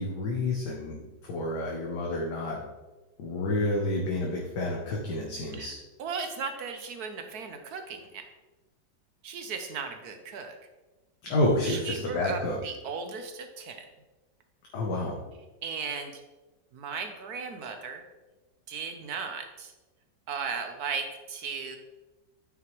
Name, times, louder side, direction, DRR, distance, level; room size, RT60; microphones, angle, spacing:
voice 1, 0.0-2.6 3.2-5.8 11.2-12.6 14.7-15.2, left 1 dB, 65° left, -2 dB, 1.5 m, -29 dB
voice 2, 6.0-8.3 9.2-10.5 11.7-13.9 15.6-16.2 16.7-18.0 18.7-19.7 20.3-21.8, right 5 dB, 65° right, 6 dB, 1.1 m, -36 dB
9.1 x 5.9 x 3.1 m, 1.1 s
omnidirectional pair, 2.0 m